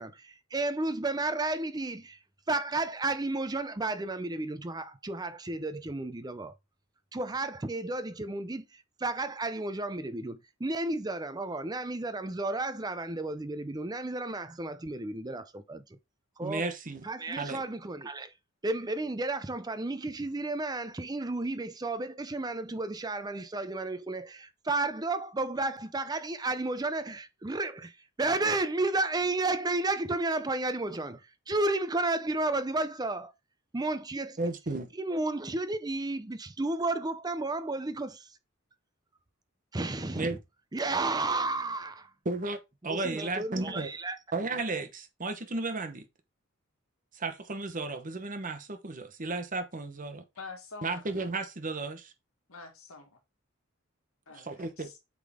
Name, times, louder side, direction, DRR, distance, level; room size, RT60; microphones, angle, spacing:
voice 1, 0.0-2.2 2.5-6.5 7.1-8.6 9.0-15.8 16.4-16.7 17.0-18.3 18.6-27.9 28.2-31.2 31.5-33.3 33.7-34.4 35.0-38.3 39.7-40.4 40.7-42.1 42.9-44.2, right 2 dB, 20° right, 0.5 m, -32 dB
voice 2, 16.4-17.0 17.4-17.6 34.4-34.9 40.2-40.4 42.2-43.9 44.3-46.0 47.1-50.2 50.8-52.1 54.3-54.9, right 3 dB, 40° right, 1.0 m, -34 dB
voice 3, 50.4-51.1 52.5-53.2 54.3-55.0, left 4 dB, 90° left, 1.9 m, -46 dB
8.3 x 3.8 x 3.6 m
head